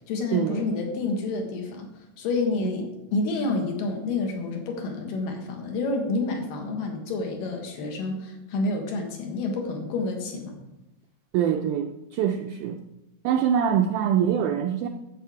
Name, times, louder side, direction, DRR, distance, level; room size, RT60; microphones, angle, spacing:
voice 1, 0.1-1.9 2.2-10.5, left 3 dB, 70° left, 3 dB, 3.2 m, -29 dB
voice 2, 11.3-12.8 13.2-14.9, right 8 dB, 80° right, 4 dB, 1.9 m, -24 dB
11.0 x 8.0 x 4.9 m, 0.93 s
omnidirectional pair, 4.1 m